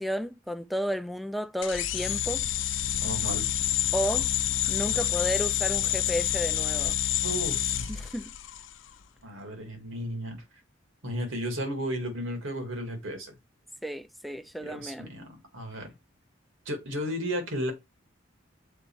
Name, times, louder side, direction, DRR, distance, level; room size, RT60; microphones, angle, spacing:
voice 1, 0.0-2.5 3.9-4.3 4.7-7.0 7.9-8.3 13.8-15.1, equal, ahead, 0.3 m, -32 dB
sound 1, 1.6-8.7, left 11 dB, 70° left, 0.6 m, -28 dB
voice 2, 3.0-3.5 7.2-8.0 9.2-10.4 11.0-13.4 14.6-15.9 16.7-17.7, equal, 80° right, 2.1 m, -34 dB
6.7 x 4.2 x 4.5 m
head